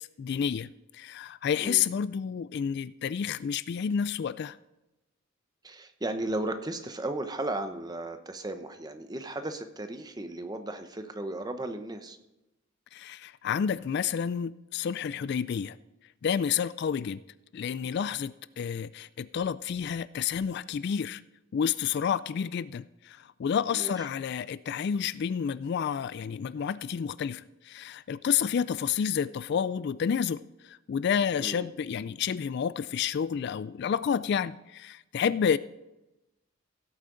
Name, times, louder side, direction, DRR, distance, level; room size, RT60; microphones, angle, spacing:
voice 1, 0.0-4.6 12.9-15.8 16.2-17.2 17.5-21.2 21.5-35.6, left 7 dB, 55° left, 0.3 m, -30 dB
voice 2, 5.6-12.2 23.7-23.9 31.4-31.7, right 2 dB, 20° right, 0.8 m, -35 dB
16.5 x 8.5 x 3.9 m
head